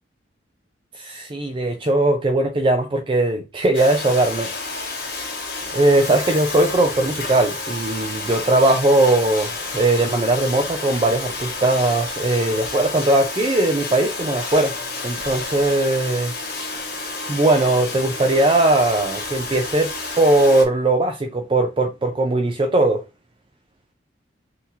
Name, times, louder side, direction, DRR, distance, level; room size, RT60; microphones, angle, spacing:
voice 1, 0.9-4.5 5.7-14.8 15.0-16.4 17.3-23.0, right 2 dB, 30° right, 0.4 m, -19 dB
Domestic sounds home sounds, 3.7-20.6, left 3 dB, 55° left, 1.4 m, -30 dB
5.8 x 2.8 x 2.7 m
head